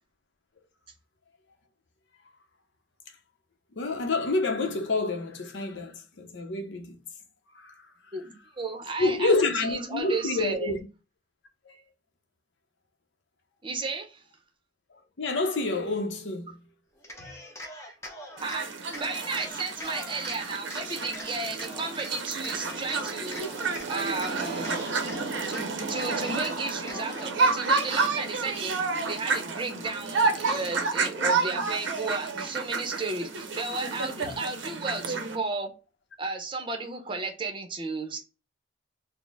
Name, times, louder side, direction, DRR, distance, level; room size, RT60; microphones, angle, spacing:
voice 1, 3.8-7.0 7.6-7.8 9.0-10.8 11.7-11.8 15.2-16.5, left 3 dB, 70° left, 0.7 m, -28 dB
voice 2, 8.1-10.7 13.6-14.2 18.4-23.4 23.9-24.9 25.5-35.7 36.2-38.2, right 3 dB, 25° right, 0.7 m, -33 dB
Cheering, 17.0-18.6 18.9-20.4 20.7-22.1 22.4-23.9 24.1-25.6 25.9-27.4, left 1 dB, 15° left, 0.8 m, -42 dB
sound 1, 18.4-35.4, right 4 dB, 85° right, 0.6 m, -30 dB
4.2 x 2.1 x 3.4 m
head